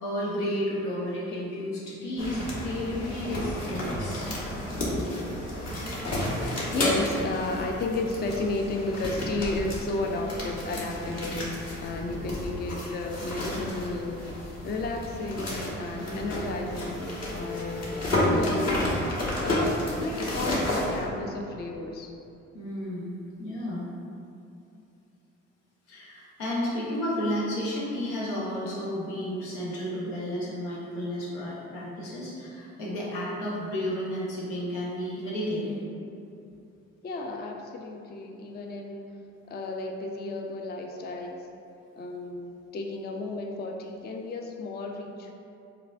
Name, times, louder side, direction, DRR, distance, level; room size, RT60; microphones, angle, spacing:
voice 1, 0.0-4.3 16.0-16.3 22.5-23.9 25.9-35.7, equal, 85° left, -6 dB, 0.8 m, -32 dB
sound 1, 2.2-21.1, left 1 dB, 45° left, 1.2 m, -31 dB
voice 2, 6.7-14.2 14.6-17.9 18.2-18.8 19.4-22.1 35.5-36.2 37.0-39.1 39.5-41.5 42.0-45.3, left 2 dB, 30° left, 3 dB, 0.4 m, -33 dB
4.8 x 2.5 x 2.3 m, 2.6 s
hypercardioid pair, 45°, 35 cm